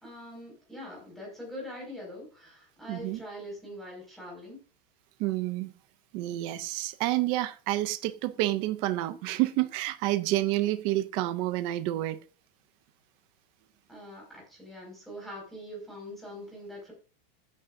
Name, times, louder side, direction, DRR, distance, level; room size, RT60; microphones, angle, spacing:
voice 1, 0.0-4.6 13.9-16.9, equal, ahead, 5.4 m, -43 dB
voice 2, 2.9-3.2 5.2-5.7 6.1-12.2, right 16 dB, 20° right, 0.4 m, -29 dB
15.0 x 9.5 x 2.6 m
supercardioid pair, 175°, 29 cm